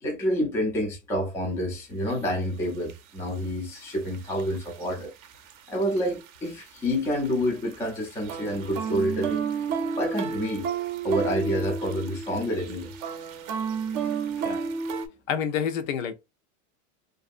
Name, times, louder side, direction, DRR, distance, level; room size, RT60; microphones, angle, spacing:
voice 1, 0.0-5.1 5.7-9.4 10.0-10.7 11.0-12.9, equal, 5° left, 0.3 m, -28 dB
sound 1, 2.1-2.2 2.9-3.0 3.8-4.9 5.2-5.5 5.8-7.4 7.7-15.1, right 6 dB, 40° right, 0.6 m, -31 dB
voice 2, 15.3-16.1, left 8 dB, 85° left, 0.8 m, -28 dB
2.6 x 2.6 x 2.4 m
supercardioid pair, 160°, 38 cm